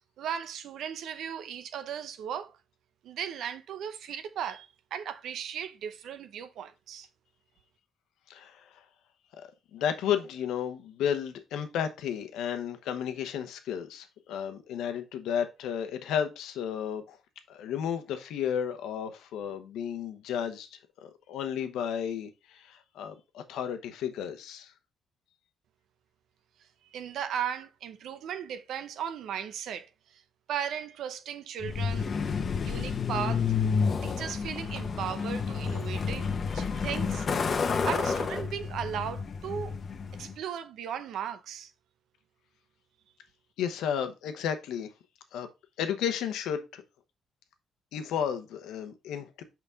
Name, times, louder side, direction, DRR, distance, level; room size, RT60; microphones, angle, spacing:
voice 1, 0.2-2.6 3.0-7.1 26.8-30.2 30.5-32.1 32.6-33.5 34.0-39.8 40.2-41.7, right 8 dB, 75° right, 0.7 m, -37 dB
voice 2, 8.3-8.6 9.7-17.2 17.5-20.7 21.0-24.7 43.6-44.9 45.3-45.5 45.8-46.8 47.9-49.4, left 8 dB, 85° left, 1.0 m, -33 dB
Truck, 31.6-40.3, left 5 dB, 45° left, 0.9 m, -30 dB
5.9 x 5.2 x 3.5 m
cardioid pair, 90°, 0 cm